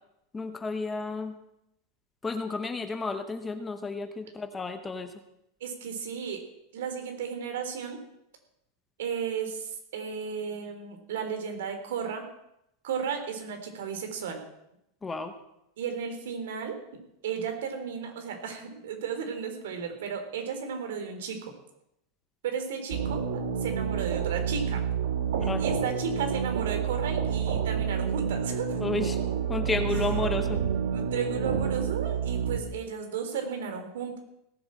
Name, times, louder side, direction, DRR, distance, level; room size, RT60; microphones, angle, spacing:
voice 1, 0.3-1.4 2.2-5.1 15.0-15.3 25.4-25.6 28.8-29.2 29.5-30.6, left 3 dB, 10° left, 8 dB, 0.9 m, -32 dB
voice 2, 5.6-6.4 6.7-8.0 9.0-12.2 12.8-14.4 15.8-16.8 17.2-21.5 22.4-24.8 25.4-28.8 30.9-34.2, right 6 dB, 85° right, 5 dB, 3.8 m, -34 dB
sound 1, 22.9-32.6, right 7 dB, 70° right, 2.5 m, -29 dB
17.5 x 8.1 x 7.6 m, 0.81 s
supercardioid pair, 180°, 0 cm